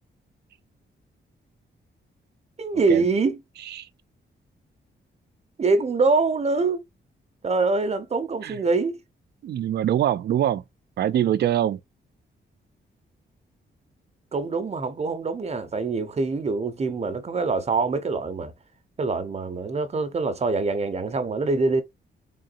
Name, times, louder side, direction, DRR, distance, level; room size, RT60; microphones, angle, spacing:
voice 1, 2.6-3.4 5.6-6.8 7.4-9.0 14.3-18.5 19.0-21.8, right 3 dB, 35° right, 0.7 m, -24 dB
voice 2, 9.4-10.6 11.0-11.8, right 11 dB, 60° right, 0.4 m, -23 dB
3.8 x 3.7 x 2.4 m
wide cardioid pair, 150°, 20 cm